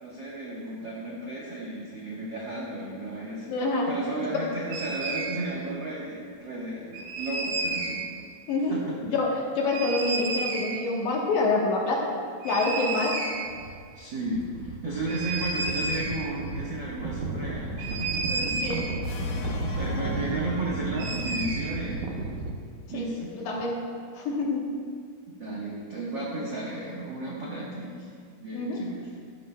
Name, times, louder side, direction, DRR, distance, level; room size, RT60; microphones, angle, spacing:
voice 1, 0.0-3.5 3.9-8.0 8.7-9.0 13.9-18.7 19.2-19.5 19.7-22.0 22.9-23.3 25.4-28.1 28.4-29.1, right 2 dB, 65° right, -5 dB, 1.1 m, -34 dB
voice 2, 3.5-3.9 4.3-4.4 8.5-8.8 9.0-12.1 12.4-13.2 18.6-18.8 22.9-23.1 23.3-23.8 24.1-24.7 28.5-28.8, left 3 dB, 70° left, -2 dB, 2.5 m, -26 dB
sound 1, 4.7-5.4 6.9-8.1 9.7-10.8 12.4-13.8 14.0-14.1 14.3-22.5, right 3 dB, 80° right, 2.6 m, -32 dB
sound 2, 19.0-21.3, left 1 dB, 85° left, 2.6 m, -34 dB
12.5 x 11.5 x 2.2 m, 2.1 s
omnidirectional pair, 4.0 m